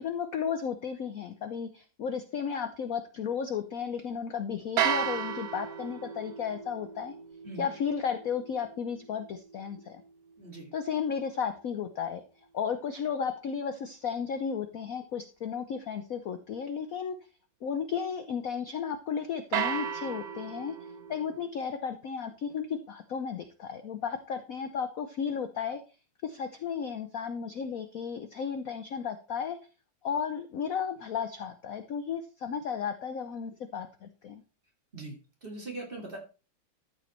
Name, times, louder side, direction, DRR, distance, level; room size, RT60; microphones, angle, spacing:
voice 1, 0.0-7.1 7.6-10.0 10.7-12.2 12.5-17.2 17.6-20.8 21.1-25.8 26.2-29.6 30.0-34.4, left 7 dB, 60° left, 9 dB, 0.9 m, -34 dB
sound 1, 4.8-10.9 19.5-21.5, right 8 dB, 65° right, 0.9 m, -35 dB
voice 2, 10.4-10.7 34.9-36.2, right 2 dB, 25° right, 0 dB, 2.8 m, -41 dB
13.5 x 5.1 x 4.4 m, 0.33 s
omnidirectional pair, 2.2 m